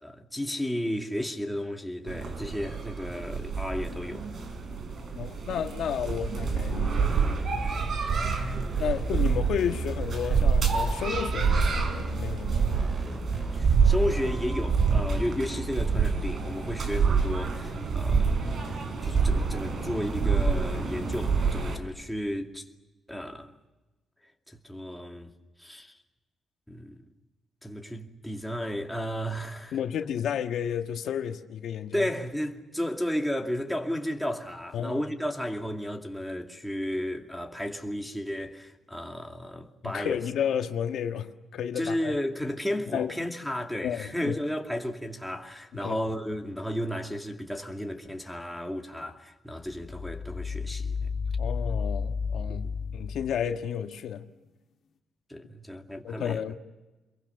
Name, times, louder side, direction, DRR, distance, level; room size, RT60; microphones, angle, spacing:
voice 1, 0.0-4.3 5.1-5.2 13.5-18.5 19.0-22.6 23.1-23.5 24.5-25.3 25.6-25.9 26.7-27.0 27.6-29.8 31.9-40.2 41.8-51.1 52.5-52.7 55.3-56.4, equal, ahead, 2.4 m, -33 dB
sound 1, 2.1-21.8, right 5 dB, 50° right, 4.5 m, -27 dB
voice 2, 5.1-7.2 7.6-7.9 8.8-12.7 29.7-32.1 34.7-35.0 39.8-42.2 42.9-43.1 43.8-44.3 45.8-46.0 51.4-54.3 56.0-56.5, left 9 dB, 75° left, 1.5 m, -32 dB
sound 2, 7.1-15.4, right 1 dB, 25° right, 3.2 m, -37 dB
sound 3, 49.7-53.4, left 5 dB, 60° left, 1.8 m, -32 dB
27.5 x 22.5 x 6.9 m
cardioid pair, 115°, 0 cm